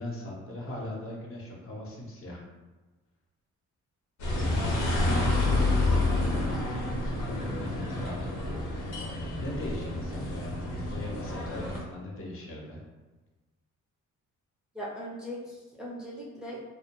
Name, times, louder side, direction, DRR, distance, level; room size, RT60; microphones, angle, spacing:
voice 1, 0.0-2.4 4.3-6.0 7.3-8.3 9.4-12.8, left 1 dB, 45° left, -2 dB, 0.7 m, -39 dB
sound 1, 4.2-11.8, left 2 dB, 75° left, 0.8 m, -29 dB
voice 2, 14.7-16.6, equal, 5° right, -5 dB, 0.4 m, -39 dB
2.2 x 2.1 x 2.9 m, 1.2 s
cardioid pair, 90°, 30 cm